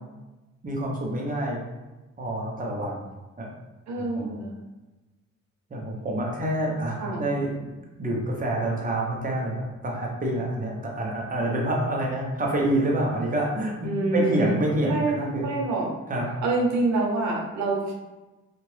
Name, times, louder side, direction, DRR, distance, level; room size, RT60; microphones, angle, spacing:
voice 1, 0.6-1.6 2.2-3.0 3.4-3.5 4.1-4.3 5.7-7.7 8.0-13.8 14.1-15.4 16.1-16.3, right 1 dB, 30° right, -2 dB, 0.8 m, -27 dB
voice 2, 3.9-4.6 7.0-7.2 13.8-14.6 14.8-15.9 16.4-17.9, right 2 dB, 70° right, -1 dB, 0.9 m, -26 dB
2.8 x 2.5 x 3.2 m, 1.1 s
cardioid pair, 90°, 30 cm